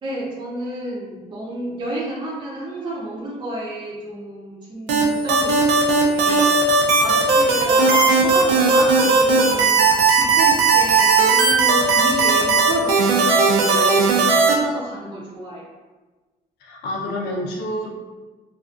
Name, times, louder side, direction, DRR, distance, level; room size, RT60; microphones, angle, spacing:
voice 1, 0.0-6.6 7.0-9.9 10.1-15.6, right 1 dB, 25° right, -5 dB, 0.5 m, -31 dB
sound 1, 4.9-14.5, right 4 dB, 80° right, 0.5 m, -16 dB
voice 2, 16.6-17.9, left 1 dB, 80° left, -2 dB, 0.6 m, -28 dB
2.4 x 2.3 x 2.4 m, 1.3 s
cardioid pair, 110°, 17 cm